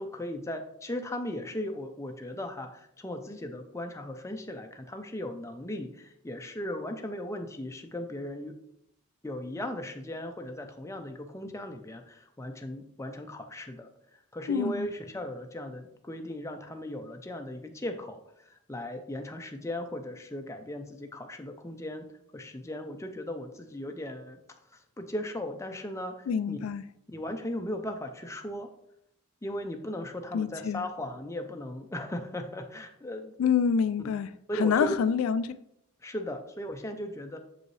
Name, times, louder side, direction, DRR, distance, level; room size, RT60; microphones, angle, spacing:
voice 1, 0.0-8.5 9.2-22.0 22.3-24.4 24.7-26.6 27.1-28.7 29.4-33.3 34.5-35.0 36.0-37.4, left 1 dB, 15° left, 0.5 m, -37 dB
voice 2, 14.5-14.9 26.3-26.8 30.3-30.8 33.4-35.5, left 6 dB, 70° left, 0.3 m, -27 dB
7.0 x 5.3 x 3.2 m
head